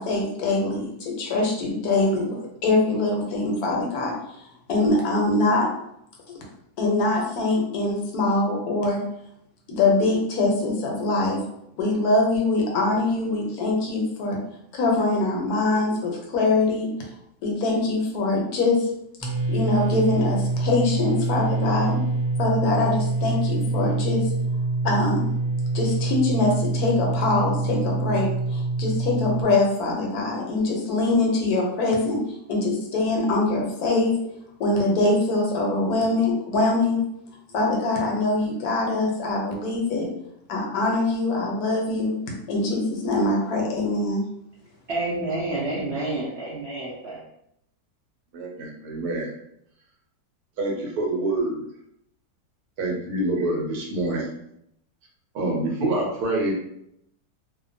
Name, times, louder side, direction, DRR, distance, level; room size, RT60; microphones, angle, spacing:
voice 1, 0.0-4.1 4.7-5.7 6.8-9.0 9.7-11.4 11.8-14.4 14.7-16.9 17.4-18.9 19.5-22.0 22.4-24.2 24.8-25.3 25.7-32.2 32.5-34.1 34.6-37.0 37.5-40.1 40.5-42.2 42.5-44.2, left 2 dB, 75° left, -1 dB, 1.2 m, -23 dB
sound 1, 19.2-29.4, right 3 dB, 35° right, 1.1 m, -25 dB
voice 2, 44.9-47.2, right 2 dB, 60° right, -6 dB, 0.7 m, -29 dB
voice 3, 48.3-49.3 50.6-51.6 52.8-54.3 55.3-56.5, right 2 dB, 75° right, -1 dB, 1.2 m, -26 dB
2.7 x 2.1 x 2.5 m, 0.76 s
omnidirectional pair, 1.7 m